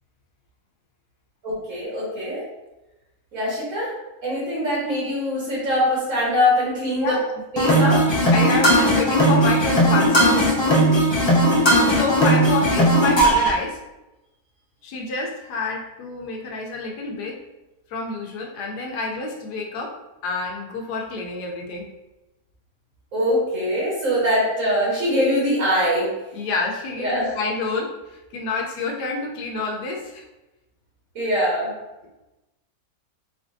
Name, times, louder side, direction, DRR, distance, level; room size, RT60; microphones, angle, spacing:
voice 1, 1.4-2.4 3.3-3.9 4.2-7.1 7.5-8.0 23.1-26.1 27.0-27.3 31.1-31.7, equal, 60° right, -7 dB, 1.7 m, -22 dB
voice 2, 7.0-7.3 8.3-10.6 11.5-13.8 14.8-17.4 17.9-19.9 20.2-21.9 26.3-30.2, left 3 dB, 85° left, -1 dB, 1.2 m, -28 dB
sound 1, 7.6-13.5, right 1 dB, 40° left, 0.3 m, -17 dB
4.0 x 3.4 x 2.6 m, 1.0 s
omnidirectional pair, 1.7 m